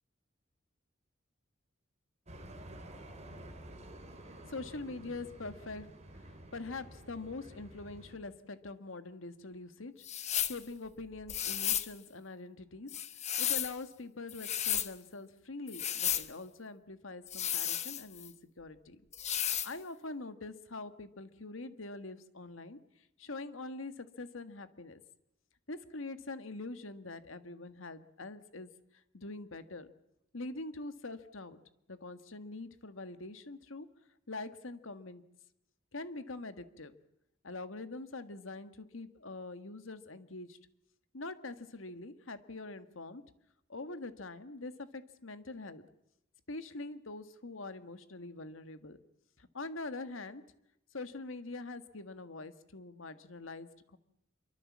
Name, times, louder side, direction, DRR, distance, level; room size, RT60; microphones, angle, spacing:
sound 1, 2.3-8.2, right 1 dB, 35° right, 3.7 m, -50 dB
voice 1, 3.2-3.8 4.4-5.9 6.1-12.9 13.4-19.0 19.6-22.8 23.2-25.0 25.7-28.7 29.1-29.9 30.3-31.6 31.9-33.9 34.3-35.2 35.9-36.9 37.4-40.6 41.1-43.2 43.7-45.8 46.5-49.0 49.4-50.4 50.9-54.0, left 2 dB, 85° left, 10 dB, 1.7 m, -44 dB
sound 2, 10.0-10.6 11.3-11.9 12.9-13.8 14.3-14.9 15.7-16.3 17.3-18.3 19.1-19.7, left 10 dB, 35° left, 1.1 m, -33 dB
26.0 x 23.5 x 7.4 m, 0.81 s
head